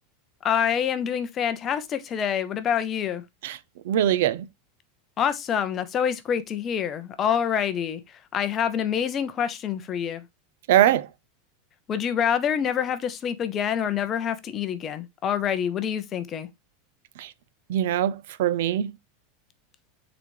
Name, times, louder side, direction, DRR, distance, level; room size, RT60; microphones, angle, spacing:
voice 1, 0.4-3.2 5.2-8.0 8.3-10.2 11.9-16.5, left 8 dB, 20° left, 0.7 m, -26 dB
voice 2, 3.9-4.5 10.7-11.1 17.2-17.3 17.7-18.9, right 11 dB, 65° right, 0.6 m, -22 dB
9.1 x 4.0 x 3.1 m
supercardioid pair, 175°, 0 cm